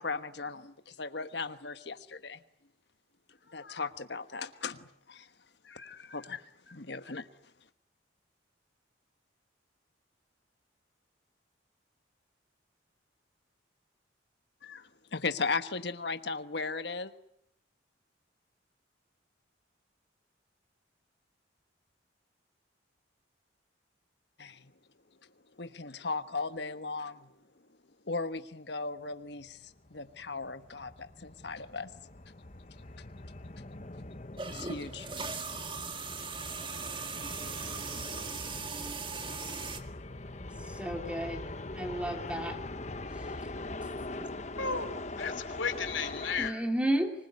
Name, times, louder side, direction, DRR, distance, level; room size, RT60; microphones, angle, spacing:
voice 1, 0.0-2.4 3.5-5.3 5.6-7.3 14.6-17.1 24.4-24.7 25.6-27.3 28.1-31.9 34.4-35.2, left 4 dB, 60° left, 10 dB, 1.3 m, -37 dB
sound 1, 29.4-46.5, left 2 dB, 35° left, 1.2 m, -42 dB
sound 2, 34.4-39.8, right 4 dB, 25° right, 1.8 m, -39 dB
voice 2, 40.7-42.6 46.4-47.1, right 1 dB, 5° right, 5 dB, 2.8 m, -32 dB
voice 3, 44.5-46.6, left 5 dB, 80° left, 10 dB, 3.0 m, -34 dB
25.5 x 20.5 x 9.6 m, 0.74 s
head